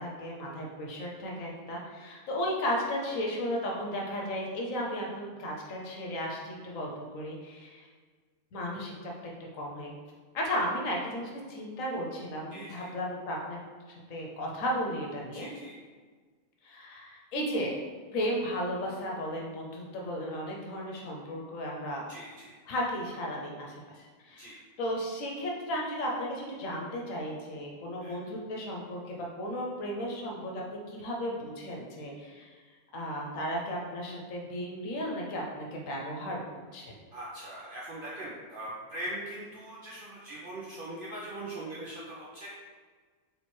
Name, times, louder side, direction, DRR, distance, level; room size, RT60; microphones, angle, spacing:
voice 1, 0.0-7.9 8.5-10.0 10.3-13.6 14.1-15.5 16.6-17.8 18.1-22.1 22.7-32.6 32.9-36.9, equal, 65° left, -2 dB, 1.1 m, -35 dB
voice 2, 12.5-12.9 15.3-15.8 22.1-22.5 24.4-24.6 28.0-28.2 37.1-42.5, right 1 dB, 55° right, -6 dB, 0.6 m, -41 dB
3.2 x 3.1 x 4.3 m, 1.5 s
omnidirectional pair, 1.5 m